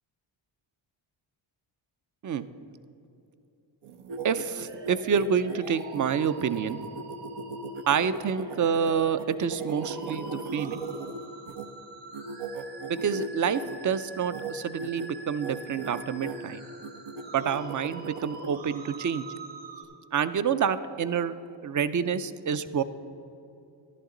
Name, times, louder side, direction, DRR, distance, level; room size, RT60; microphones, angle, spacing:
sound 1, 3.8-11.6 12.1-13.8 14.2-14.5 14.8-15.1 15.4-16.4 16.8-18.6, right 3 dB, 75° right, 0.8 m, -37 dB
voice 1, 4.2-6.8 7.9-10.8 12.9-16.6 17.3-19.3 20.1-21.3 21.6-22.8, right 7 dB, 40° right, 14 dB, 0.5 m, -28 dB
sound 2, 4.3-19.8, right 2 dB, 60° right, 1.6 m, -45 dB
11.0 x 11.0 x 3.8 m, 2.8 s
cardioid pair, 70°, 49 cm